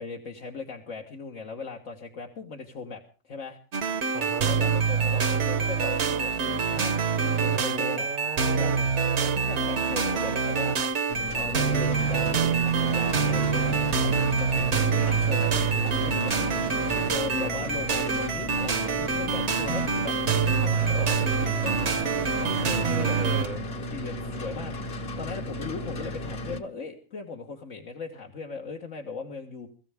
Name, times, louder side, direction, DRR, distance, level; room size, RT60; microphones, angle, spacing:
voice 1, 0.0-3.6 4.4-8.1 8.6-8.7 9.2-11.0 11.3-14.7 15.1-16.5 17.1-23.2 23.9-29.7, left 4 dB, 70° left, 0 dB, 1.8 m, -38 dB
sound 1, 3.7-23.5, right 5 dB, 60° right, 1.3 m, -26 dB
voice 2, 4.1-4.5 7.5-8.9 14.9-15.3 17.4-18.2 22.6-23.7, right 4 dB, 45° right, 10 dB, 1.0 m, -37 dB
sound 2, 11.1-26.6, left 1 dB, 50° left, 1.4 m, -35 dB
23.5 x 14.0 x 3.5 m, 0.38 s
omnidirectional pair, 1.4 m